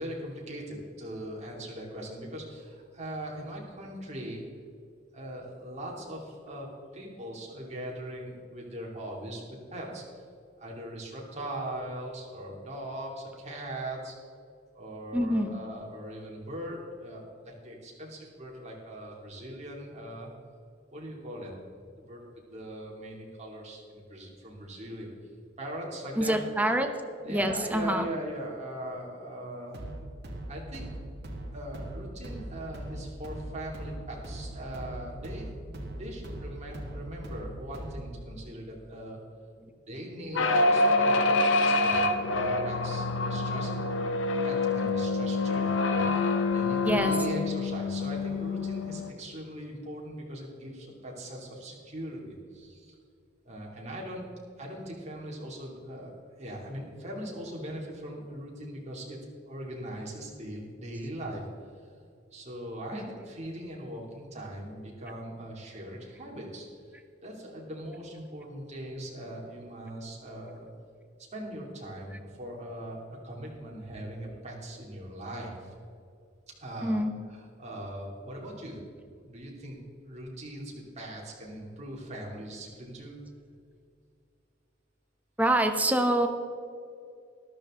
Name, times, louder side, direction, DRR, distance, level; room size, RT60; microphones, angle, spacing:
voice 1, 0.0-4.4 5.1-6.7 6.9-10.0 10.6-14.1 14.7-20.3 20.9-21.5 21.9-22.2 22.5-25.1 25.6-26.3 27.2-29.8 30.5-30.9 31.5-39.2 39.9-43.7 44.4-46.1 46.5-52.9 53.4-54.3 54.6-56.1 56.4-59.2 59.4-61.4 62.3-66.6 67.2-70.7 71.3-75.7 76.6-78.8 79.2-79.8 80.0-83.2, right 1 dB, 35° right, -2 dB, 2.9 m, -40 dB
voice 2, 15.1-15.6 26.2-27.0 27.3-28.0 46.8-47.1 76.8-77.1 85.4-86.3, right 1 dB, 10° right, 6 dB, 0.9 m, -25 dB
sound 1, 29.7-38.2, right 1 dB, 60° right, 1.8 m, -40 dB
sound 2, 40.3-49.1, left 2 dB, 70° left, 0.9 m, -26 dB
13.5 x 13.0 x 3.8 m, 2.3 s
head